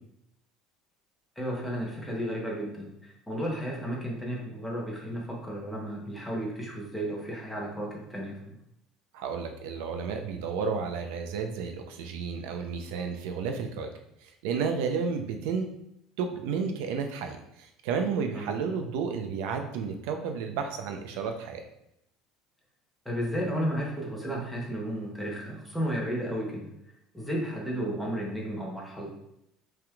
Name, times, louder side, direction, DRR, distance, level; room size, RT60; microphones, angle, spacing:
voice 1, 1.4-8.6 18.3-18.6 23.0-26.7 27.1-29.1, equal, ahead, -3 dB, 0.9 m, -33 dB
voice 2, 9.1-13.9 14.2-15.7 16.2-21.6, right 5 dB, 85° right, 5 dB, 0.6 m, -32 dB
5.7 x 3.5 x 2.4 m, 0.81 s
cardioid pair, 145°, 0 cm